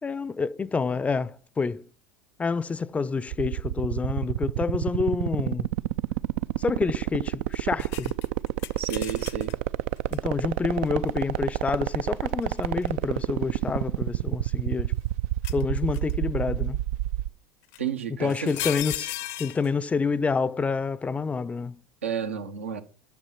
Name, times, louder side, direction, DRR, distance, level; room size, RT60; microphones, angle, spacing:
voice 1, 0.0-1.9 2.4-5.7 6.6-8.1 10.1-14.9 15.5-16.8 18.2-21.8, left 4 dB, 20° left, 0.5 m, -28 dB
sound 1, 3.3-17.3, right 15 dB, 70° right, 0.4 m, -27 dB
sound 2, 7.8-9.5 10.1-10.2 12.3-12.9 13.7-14.8 15.4-16.1 17.7-17.8 18.2-19.7, left 16 dB, 65° left, 0.7 m, -36 dB
voice 2, 8.8-9.5 17.8-18.5 22.0-22.8, right 7 dB, 90° right, 1.1 m, -31 dB
10.5 x 6.2 x 5.8 m
hypercardioid pair, 85°, 7 cm